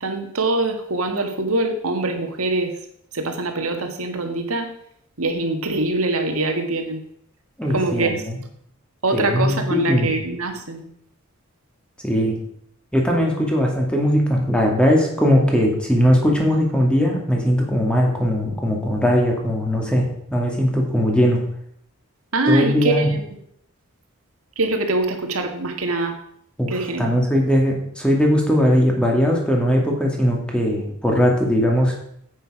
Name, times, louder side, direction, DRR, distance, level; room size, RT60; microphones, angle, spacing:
voice 1, 0.0-2.7 3.1-4.7 5.2-7.0 7.7-8.2 9.0-10.9 22.3-23.2 24.6-26.1 26.7-27.1, right 2 dB, 85° right, 5 dB, 1.8 m, -23 dB
voice 2, 7.6-8.4 9.1-10.1 12.0-12.4 12.9-21.4 22.5-23.2 26.6-32.0, equal, 5° left, 0 dB, 2.3 m, -19 dB
9.3 x 8.6 x 5.0 m, 0.70 s
head